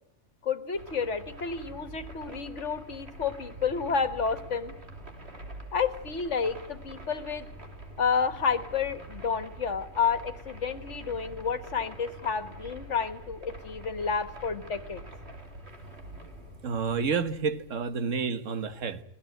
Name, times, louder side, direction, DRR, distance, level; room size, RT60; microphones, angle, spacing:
voice 1, 0.4-4.7 5.7-7.5 8.0-15.0, left 6 dB, 70° left, 1.8 m, -30 dB
sound 1, 0.7-18.1, right 1 dB, 55° right, 3.3 m, -45 dB
voice 2, 16.6-19.0, right 5 dB, 80° right, 1.6 m, -29 dB
24.0 x 17.5 x 9.1 m
omnidirectional pair, 1.3 m